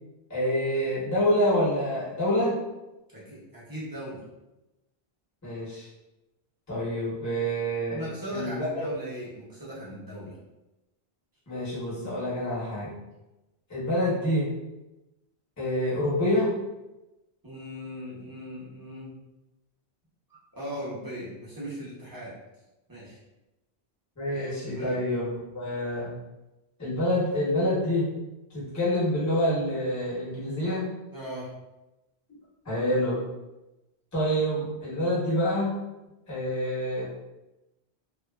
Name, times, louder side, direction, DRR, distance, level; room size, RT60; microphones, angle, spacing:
voice 1, 0.3-2.6 5.4-5.9 6.7-8.0 8.3-8.8 11.5-12.9 13.7-14.5 15.6-16.5 24.2-26.1 26.8-28.1 28.5-30.8 32.6-33.2 34.1-35.7 36.3-37.3, equal, 20° left, -8 dB, 0.7 m, -27 dB
voice 2, 3.1-4.2 7.9-10.4 17.4-19.1 20.3-22.3 22.9-23.2 24.3-25.0 31.1-31.5, equal, 25° right, -7 dB, 0.7 m, -38 dB
2.6 x 2.3 x 2.3 m, 0.99 s
omnidirectional pair, 1.1 m